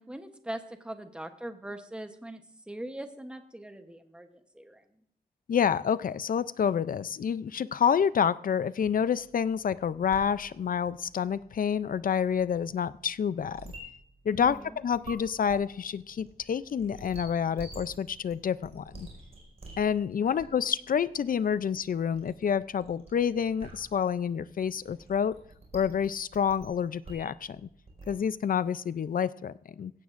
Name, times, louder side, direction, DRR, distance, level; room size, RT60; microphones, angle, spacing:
voice 1, 0.0-4.9 14.3-14.8 20.2-20.4, right 1 dB, 5° right, 7 dB, 0.9 m, -41 dB
voice 2, 5.5-13.7 14.3-14.6 14.8-19.1 19.8-25.4 25.7-27.7 28.1-29.9, left 7 dB, 60° left, 16 dB, 0.4 m, -28 dB
sound 1, 9.1-28.2, right 2 dB, 40° right, 4.9 m, -50 dB
16.5 x 15.5 x 2.5 m, 0.72 s
wide cardioid pair, 165°, 17 cm